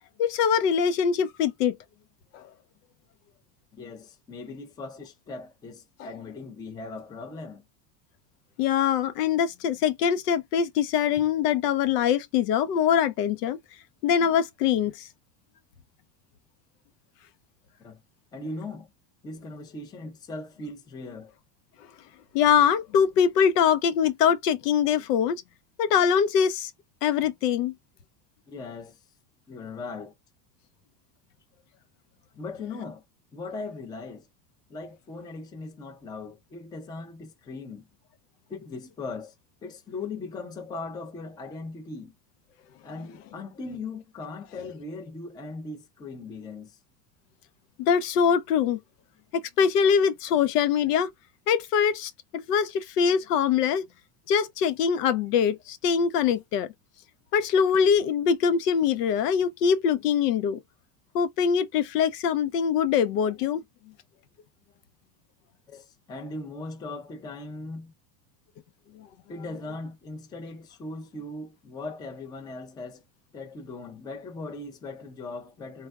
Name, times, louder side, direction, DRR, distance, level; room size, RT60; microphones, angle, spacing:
voice 1, 0.2-1.8 2.3-2.4 8.6-13.6 14.0-15.1 22.3-25.4 25.8-26.7 27.0-27.7 47.8-48.8 49.3-51.1 51.5-53.9 54.3-56.7 57.3-60.6 61.1-63.6, left 7 dB, 90° left, 0.7 m, -23 dB
voice 2, 3.7-7.6 17.8-18.0 18.3-18.9 19.2-21.3 28.5-29.0 29.5-30.1 32.4-33.0 33.3-34.3 34.7-37.8 38.5-39.3 39.6-42.1 42.8-46.8 65.7-67.9 69.3-73.0 73.3-75.9, left 3 dB, 10° left, 0.4 m, -39 dB
3.4 x 2.3 x 2.3 m
supercardioid pair, 135°, 46 cm